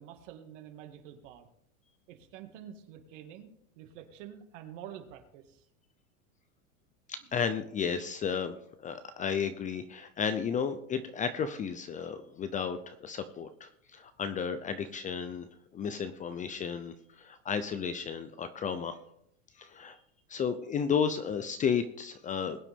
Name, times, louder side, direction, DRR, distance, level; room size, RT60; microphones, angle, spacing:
voice 1, 0.0-1.5 2.1-5.7, right 10 dB, 60° right, 5 dB, 2.2 m, -48 dB
voice 2, 7.1-8.5 8.8-15.5 15.7-19.0 19.6-20.0 20.3-22.6, left 6 dB, 20° left, 11 dB, 0.6 m, -33 dB
21.0 x 8.2 x 3.6 m, 0.71 s
supercardioid pair, 130°, 42 cm